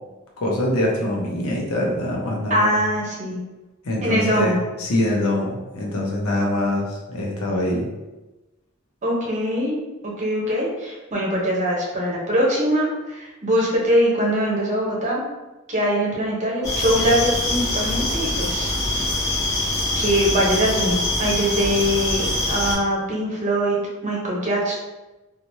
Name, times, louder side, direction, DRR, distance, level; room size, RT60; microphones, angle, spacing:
voice 1, 0.4-2.8 3.8-7.9, left 1 dB, 90° left, -2 dB, 0.8 m, -24 dB
voice 2, 2.5-3.4 4.0-4.6 9.0-9.8 10.0-15.2 15.7-18.7 19.0-19.1 20.0-23.8 24.0-24.8, equal, 35° right, -4 dB, 0.8 m, -22 dB
sound 1, 16.6-22.7, left 1 dB, 15° left, 1.0 m, -24 dB
3.0 x 2.4 x 2.7 m, 1.1 s
head